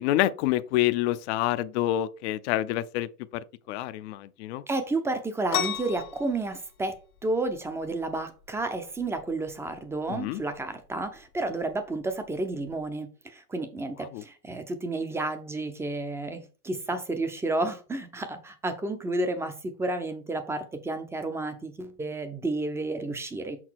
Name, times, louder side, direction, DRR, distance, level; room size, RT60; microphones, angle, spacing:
voice 1, 0.0-3.4 3.7-4.6 10.1-10.4 14.0-14.2, left 14 dB, 50° left, 0.5 m, -27 dB
voice 2, 4.7-23.6, right 2 dB, 5° right, 0.5 m, -31 dB
sound 1, 5.5-12.9, left 9 dB, 65° left, 1.2 m, -38 dB
6.1 x 3.9 x 4.5 m
hypercardioid pair, 125°, 45 cm